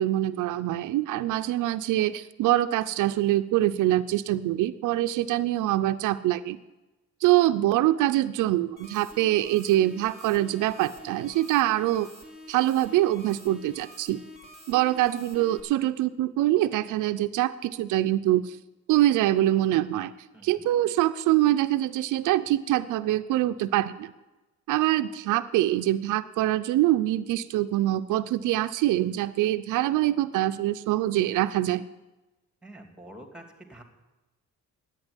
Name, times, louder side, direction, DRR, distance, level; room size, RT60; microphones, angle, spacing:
voice 1, 0.0-6.6 7.2-12.1 12.5-14.2 14.7-18.6 18.9-20.1 20.4-24.1 24.7-31.8, right 14 dB, 85° right, 9 dB, 0.6 m, -24 dB
sound 1, 8.8-15.6, left 1 dB, 30° left, 3.3 m, -48 dB
voice 2, 20.3-20.6 32.6-33.8, right 1 dB, 5° right, 5 dB, 2.7 m, -47 dB
10.5 x 8.9 x 9.7 m, 1.1 s
cardioid pair, 90°, 30 cm